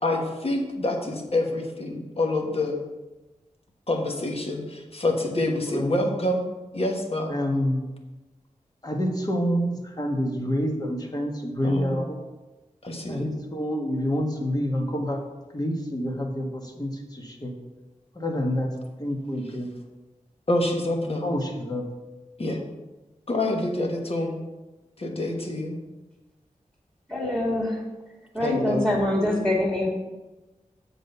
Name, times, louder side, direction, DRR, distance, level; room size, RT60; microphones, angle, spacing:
voice 1, 0.0-2.8 3.9-6.4 6.7-7.3 11.6-12.0 12.8-13.3 20.5-21.3 22.4-22.6 23.3-24.4 25.0-25.8 28.4-29.0, left 1 dB, 45° left, 2 dB, 1.4 m, -27 dB
voice 2, 5.6-6.1 7.3-7.9 8.8-12.2 13.1-15.2 15.5-17.5 18.1-18.7 19.0-19.7 21.2-21.9, equal, 30° left, 1 dB, 1.5 m, -27 dB
voice 3, 27.1-27.8 28.3-29.9, left 1 dB, 5° left, -5 dB, 2.2 m, -24 dB
7.7 x 4.1 x 6.9 m, 1.1 s
wide cardioid pair, 75°, 14 cm